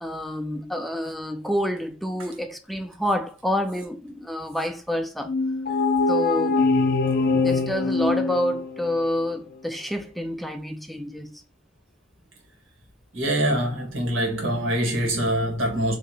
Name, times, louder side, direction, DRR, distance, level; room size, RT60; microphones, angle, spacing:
voice 1, 0.0-5.3 6.1-6.6 7.3-11.4, left 1 dB, ahead, 0.3 m, -28 dB
sound 1, 5.3-9.0, left 3 dB, 50° left, 0.6 m, -23 dB
voice 2, 13.1-15.9, right 1 dB, 85° right, 1.6 m, -24 dB
4.7 x 2.8 x 2.8 m
head